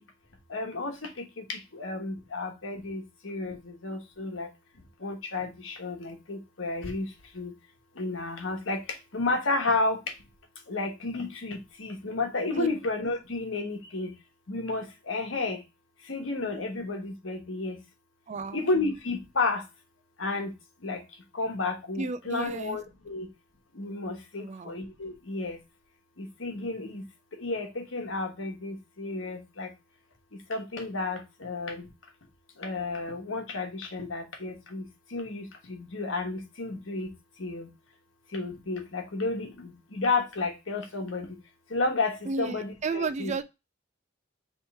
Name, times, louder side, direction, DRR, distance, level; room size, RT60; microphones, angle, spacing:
voice 1, 0.5-3.6 3.8-4.5 5.0-7.1 7.4-7.5 8.0-8.8 9.1-10.0 10.7-14.1 14.5-15.6 16.1-17.8 18.5-19.6 20.2-20.5 20.8-21.0 21.3-23.3 23.8-25.6 26.2-27.0 27.4-29.7 30.5-31.8 32.6-34.8 35.1-37.1 37.4-37.7 38.3-41.3 41.7-43.3, left 3 dB, 80° left, 1.2 m, -32 dB
voice 2, 18.3-18.6 22.0-22.8 24.4-24.7 42.3-43.4, right 4 dB, 35° right, 0.3 m, -33 dB
3.6 x 3.1 x 4.0 m
head